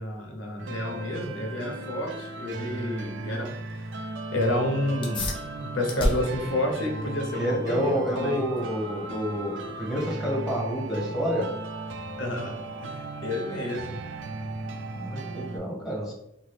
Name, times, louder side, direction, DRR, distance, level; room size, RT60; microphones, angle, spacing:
voice 1, 0.0-5.3 5.7-8.4 12.2-12.5 12.8-14.0, left 1 dB, 70° left, 2 dB, 0.6 m, -30 dB
sound 1, 0.6-15.6, right 2 dB, 65° right, 0.4 m, -36 dB
sound 2, 5.0-15.0, left 1 dB, 25° left, 0.6 m, -37 dB
voice 2, 7.3-11.5 14.9-16.1, equal, ahead, -4 dB, 1.0 m, -29 dB
2.9 x 2.4 x 3.1 m, 0.77 s
head